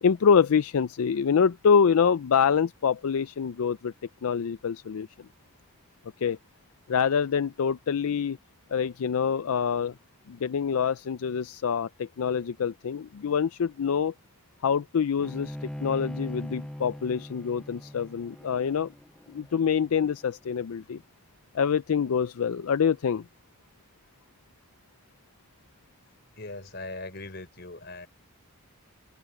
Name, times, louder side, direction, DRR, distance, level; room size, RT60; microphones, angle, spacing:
voice 1, 0.0-3.9 4.2-5.3 6.2-6.4 6.9-8.4 8.7-10.0 10.3-14.1 14.6-18.9 19.3-21.0 21.5-23.3, left 6 dB, 80° left, 0.4 m, -25 dB
Bowed string instrument, 15.2-20.5, equal, 5° left, 0.4 m, -40 dB
voice 2, 26.4-28.1, left 2 dB, 50° left, 4.5 m, -40 dB
open air
head